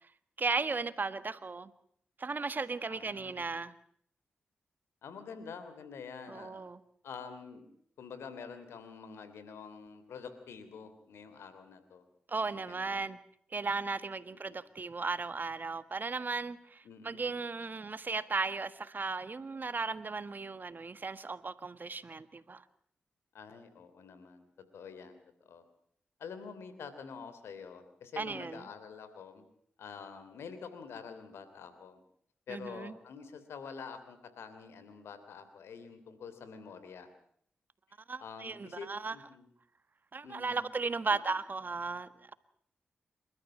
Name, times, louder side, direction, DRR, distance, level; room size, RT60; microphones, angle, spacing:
voice 1, 0.4-1.7 2.2-3.7 6.3-6.8 12.3-13.2 13.5-22.6 28.2-28.6 32.5-32.9 38.1-39.1 40.1-42.3, right 4 dB, 50° right, 13 dB, 1.6 m, -36 dB
voice 2, 2.9-3.5 5.0-6.6 7.0-7.7 8.0-12.0 12.4-13.0 14.5-14.6 16.8-17.3 23.3-25.6 26.2-29.4 29.8-32.0 32.5-37.1 38.2-39.5 40.2-40.6 41.1-41.2, left 6 dB, 85° left, 11 dB, 3.1 m, -47 dB
27.5 x 13.5 x 8.8 m, 0.66 s
supercardioid pair, 40°, 4 cm